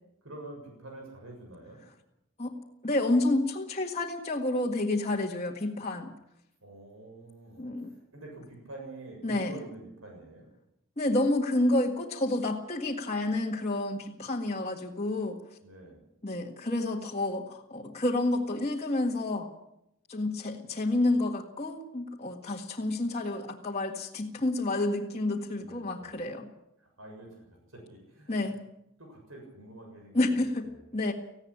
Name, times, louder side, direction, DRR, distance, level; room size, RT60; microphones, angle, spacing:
voice 1, 0.2-1.8 6.6-7.7 8.1-10.5 15.6-16.0 25.6-26.2 26.8-27.5 27.7-28.6 29.0-30.8, right 2 dB, 90° right, 1 dB, 7.1 m, -47 dB
voice 2, 2.8-6.1 7.6-7.9 9.2-9.5 11.0-15.4 16.2-19.5 20.1-26.5 28.3-28.6 30.1-30.7 30.9-31.1, left 2 dB, 30° left, -3 dB, 1.8 m, -29 dB
18.5 x 16.0 x 8.8 m, 0.82 s
head